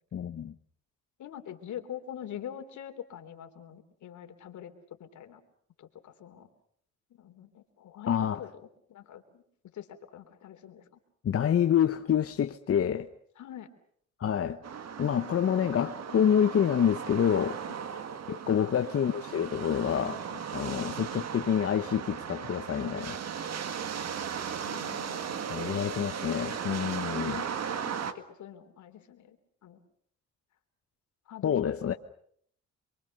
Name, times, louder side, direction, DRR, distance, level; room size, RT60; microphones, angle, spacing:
voice 1, 0.1-0.5 8.1-8.4 11.2-13.1 14.2-14.6 15.0-17.6 18.3-23.2 25.5-27.4 31.4-31.9, left 9 dB, 50° left, 1.1 m, -27 dB
voice 2, 1.2-4.7 5.0-5.4 5.8-6.5 7.1-8.5 8.9-9.4 9.7-10.8 13.4-13.7 18.3-18.8 24.0-24.1 24.6-25.9 27.6-29.4 29.6-29.8 31.3-32.0, left 10 dB, 75° left, 3.4 m, -45 dB
sound 1, 14.6-28.1, right 7 dB, 60° right, 1.9 m, -37 dB
27.0 x 23.5 x 6.7 m
cardioid pair, 90°, 30 cm